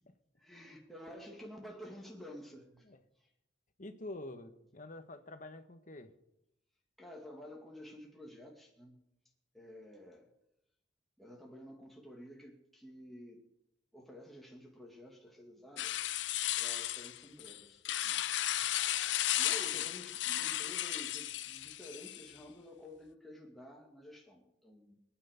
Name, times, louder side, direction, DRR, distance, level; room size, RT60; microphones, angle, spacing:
voice 1, 0.4-2.9 3.2-3.3 7.0-9.0 9.5-10.3 11.2-13.4 13.9-15.9 16.6-18.2 19.4-25.0, left 1 dB, ahead, 2.2 m, -51 dB
voice 2, 3.8-6.1, left 2 dB, 45° left, 1.4 m, -47 dB
sound 1, 15.8-22.4, left 13 dB, 85° left, 0.5 m, -34 dB
26.0 x 9.4 x 5.2 m
head